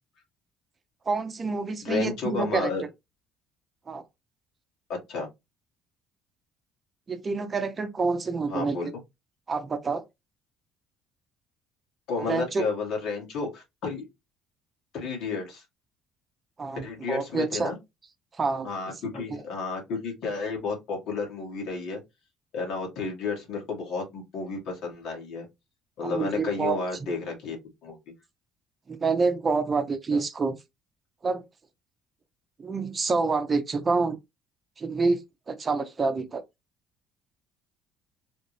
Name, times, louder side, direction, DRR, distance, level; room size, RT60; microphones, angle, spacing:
voice 1, 1.1-2.7 3.9-4.0 7.1-8.7 9.5-10.0 12.3-12.6 16.6-17.7 18.4-18.7 26.0-26.8 28.9-30.6 31.2-31.4 32.6-34.2 34.8-35.2 35.5-36.4, right 4 dB, 35° right, 0.7 m, -27 dB
voice 2, 1.8-2.9 4.9-5.3 8.5-9.0 12.1-14.1 14.9-15.7 16.8-17.8 18.6-22.0 22.5-25.5 26.0-27.6 27.8-28.0 30.1-30.2, left 4 dB, 65° left, 1.9 m, -32 dB
3.5 x 2.5 x 3.3 m
hypercardioid pair, 65°, 0 cm